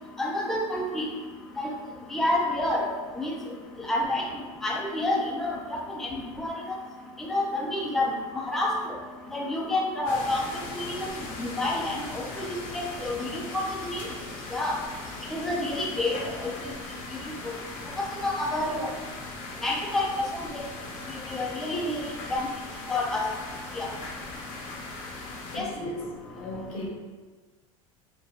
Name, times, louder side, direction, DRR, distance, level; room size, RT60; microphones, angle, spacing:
voice 1, 0.2-1.1 1.6-1.7 2.1-3.3 3.9-4.2 4.6-5.6 6.0-6.1 6.4-6.8 7.2-8.1 8.3-8.7 9.3-10.4 10.7-11.1 11.4-14.0 14.5-14.8 15.3-16.5 18.0-18.9 19.6-20.7 21.3-22.5 22.9-23.2 23.8-23.9 25.6-25.7, left 2 dB, ahead, -2 dB, 0.4 m, -28 dB
sound 1, 10.1-25.6, left 2 dB, 55° left, 0.7 m, -39 dB
voice 2, 25.5-26.9, left 1 dB, 85° left, -3 dB, 1.0 m, -37 dB
3.4 x 2.3 x 2.6 m, 1.3 s
hypercardioid pair, 100°, 17 cm